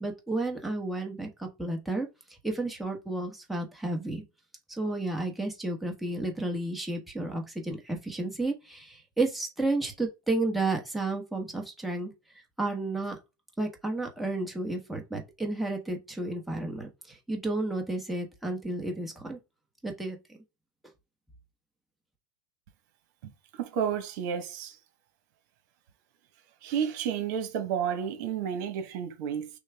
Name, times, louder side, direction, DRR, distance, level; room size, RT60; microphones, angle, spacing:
voice 1, 0.0-2.1 2.4-4.2 4.8-12.1 12.6-13.2 13.6-19.4 19.8-20.2, right 2 dB, ahead, 1.1 m, -32 dB
voice 2, 23.2-24.8 26.6-29.5, right 8 dB, 60° right, 1.2 m, -31 dB
6.3 x 2.3 x 3.4 m
supercardioid pair, 125°, 11 cm